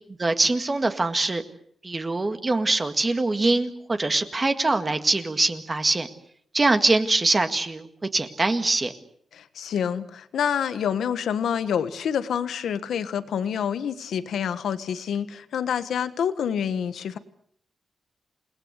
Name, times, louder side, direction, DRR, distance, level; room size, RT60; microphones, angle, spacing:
voice 1, 0.2-1.4 1.8-6.1 6.5-7.9 8.1-8.9, right 2 dB, 25° right, 7 dB, 1.9 m, -23 dB
voice 2, 9.3-17.2, left 8 dB, 85° left, 12 dB, 1.4 m, -27 dB
29.0 x 19.5 x 8.2 m, 0.65 s
wide cardioid pair, 130°, 0 cm